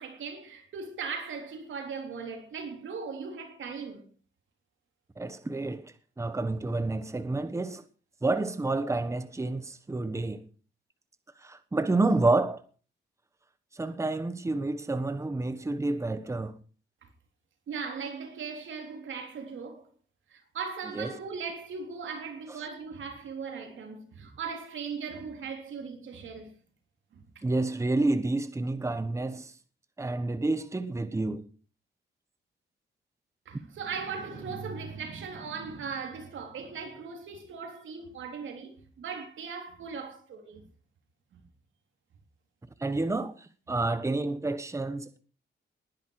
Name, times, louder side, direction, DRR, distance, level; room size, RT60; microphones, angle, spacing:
voice 1, 0.0-4.1 17.7-19.9 20.3-26.5 27.1-27.2 33.5-40.7 41.3-41.4, right 5 dB, 85° right, 3.5 m, -38 dB
voice 2, 5.2-7.8 8.2-10.4 11.4-12.6 13.7-16.5 20.9-21.1 27.4-29.5 30.0-31.4 42.8-45.2, right 2 dB, 15° right, 1.2 m, -29 dB
20.0 x 10.5 x 4.8 m
wide cardioid pair, 130°, 19 cm